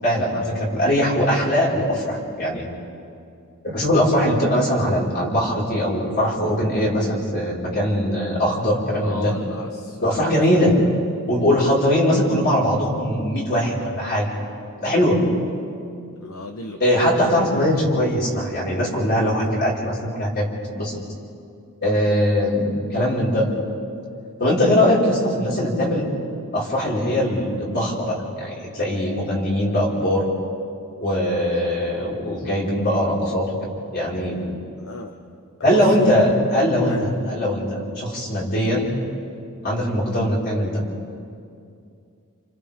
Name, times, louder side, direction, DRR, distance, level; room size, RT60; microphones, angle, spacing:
voice 1, 0.0-2.6 3.6-9.4 10.0-10.7 11.3-14.3 14.8-15.2 16.8-20.4 20.7-21.0 21.8-23.5 24.4-26.1 26.5-30.2 31.0-33.6 33.9-34.4 35.6-38.9 39.6-40.8, equal, 45° left, -5 dB, 5.3 m, -21 dB
voice 2, 9.0-10.4 16.2-16.8 21.8-22.0 34.8-35.1 35.7-36.1 36.8-37.0, left 2 dB, 65° left, 4 dB, 1.0 m, -34 dB
30.0 x 30.0 x 3.7 m, 2.5 s
head